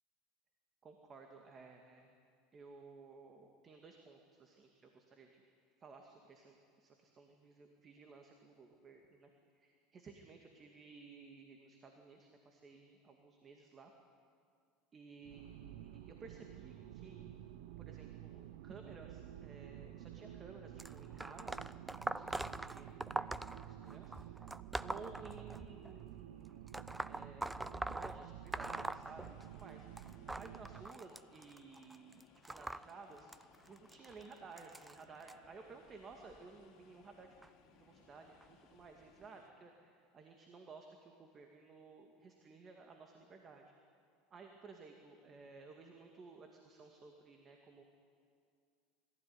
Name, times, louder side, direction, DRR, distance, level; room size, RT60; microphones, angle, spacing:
voice 1, 0.8-2.2 2.5-5.4 5.8-9.3 9.6-13.9 14.9-17.4 17.8-22.3 22.7-24.1 24.4-26.8 27.1-29.9 30.3-33.3 33.7-37.4 37.7-43.6 44.3-47.8, right 4 dB, 30° right, 3 dB, 2.2 m, -56 dB
sound 1, 15.2-30.9, right 12 dB, 75° right, 0.9 m, -51 dB
sound 2, 20.8-25.9 26.7-29.7 30.0-35.3 36.1-36.4 37.4-37.5 38.4-38.5 39.2-39.3, right 2 dB, 10° right, 0.6 m, -43 dB
sound 3, 28.6-39.5, left 6 dB, 55° left, 2.6 m, -67 dB
22.5 x 15.0 x 9.8 m, 2.3 s
supercardioid pair, 105°, 0 cm